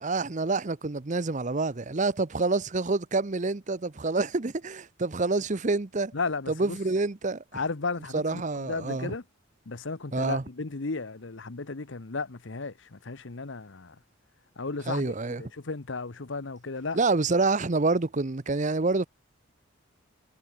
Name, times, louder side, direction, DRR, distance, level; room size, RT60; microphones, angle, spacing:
voice 1, 0.0-6.1 6.5-7.4 8.1-9.1 10.1-10.4 14.9-15.4 16.9-19.1, right 3 dB, 40° right, 0.8 m, -27 dB
voice 2, 6.1-6.8 7.5-9.2 9.7-14.0 14.6-17.0, left 4 dB, 65° left, 1.0 m, -34 dB
head